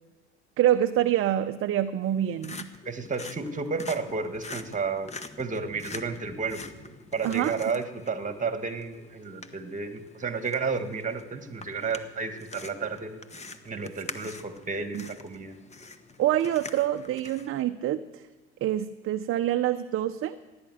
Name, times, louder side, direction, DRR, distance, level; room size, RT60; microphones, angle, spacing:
voice 1, 0.6-2.7 7.2-7.5 14.9-15.0 16.2-18.2 18.6-20.4, right 12 dB, 40° right, 8 dB, 0.7 m, -26 dB
sound 1, 2.0-17.6, left 3 dB, 20° left, 1.1 m, -45 dB
voice 2, 2.8-6.6 7.1-13.2 13.6-15.5, right 4 dB, 20° right, 8 dB, 1.7 m, -32 dB
16.0 x 10.5 x 7.9 m, 1.2 s
hypercardioid pair, 85°, 36 cm